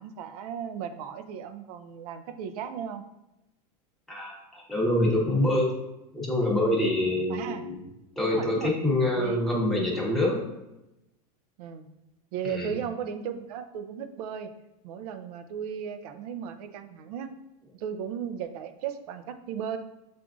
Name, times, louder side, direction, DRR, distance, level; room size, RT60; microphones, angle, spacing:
voice 1, 0.0-3.0 7.3-7.6 8.2-8.7 9.2-9.5 11.6-11.9 12.3-14.5 14.8-17.3 17.7-19.8, right 8 dB, 70° right, 8 dB, 0.5 m, -35 dB
voice 2, 4.1-5.7 6.1-7.8 8.2-10.4 12.4-12.7, left 1 dB, ahead, -5 dB, 0.9 m, -26 dB
6.1 x 2.5 x 2.3 m, 0.92 s
supercardioid pair, 145°, 20 cm